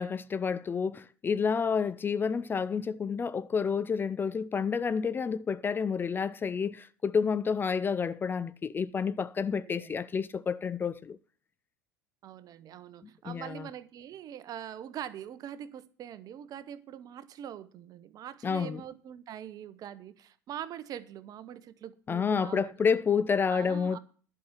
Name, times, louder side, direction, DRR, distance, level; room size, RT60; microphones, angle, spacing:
voice 1, 0.0-11.2 13.3-13.7 18.4-18.8 22.1-24.0, left 6 dB, 20° left, 0.4 m, -29 dB
voice 2, 9.6-10.0 12.2-22.7 23.5-24.0, right 10 dB, 40° right, 0.9 m, -43 dB
11.0 x 5.8 x 7.4 m
figure-of-eight pair, 75°, 9 cm